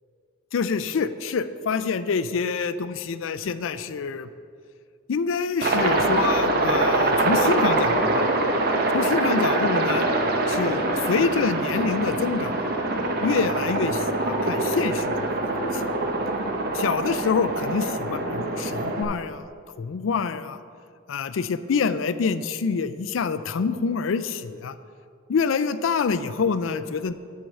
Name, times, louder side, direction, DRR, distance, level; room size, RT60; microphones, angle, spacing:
voice 1, 0.5-4.3 5.1-8.3 8.9-10.1 10.5-12.7 13.2-15.3 15.7-15.8 16.7-19.5 19.8-20.6 21.1-24.7 25.3-27.1, left 5 dB, 75° left, 13 dB, 0.4 m, -26 dB
Aircraft, 5.6-19.0, right 2 dB, 50° right, 0.8 m, -24 dB
10.0 x 4.5 x 6.4 m, 2.2 s
head